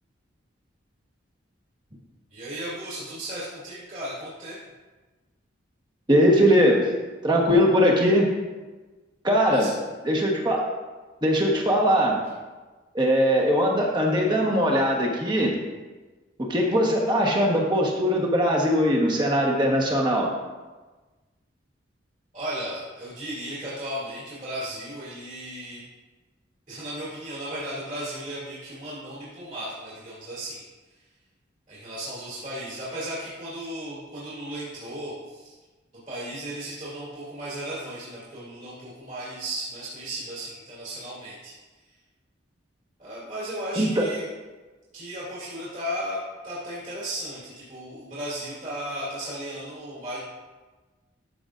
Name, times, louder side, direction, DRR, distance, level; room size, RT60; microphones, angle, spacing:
voice 1, 2.3-4.6 9.5-9.7 22.3-25.8 26.7-30.6 31.7-35.5 36.1-41.5 43.0-44.2 44.9-50.2, right 1 dB, 40° right, -9 dB, 2.7 m, -35 dB
voice 2, 6.1-6.9 7.2-8.3 9.2-9.7 10.0-10.6 11.2-12.2 12.9-15.6 16.4-20.3 43.8-44.1, equal, 20° right, -1 dB, 1.3 m, -21 dB
13.0 x 6.9 x 2.6 m, 1.3 s
head